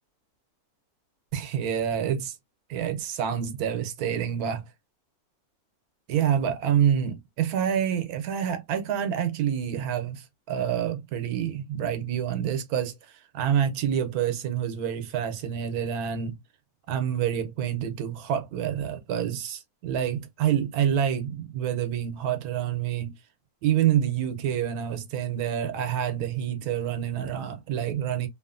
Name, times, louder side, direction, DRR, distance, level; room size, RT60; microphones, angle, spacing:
voice 1, 1.3-2.4 2.7-4.6 6.1-16.4 16.9-23.1 23.6-28.3, right 9 dB, 85° right, 1.1 m, -27 dB
2.8 x 2.4 x 2.4 m
omnidirectional pair, 1.6 m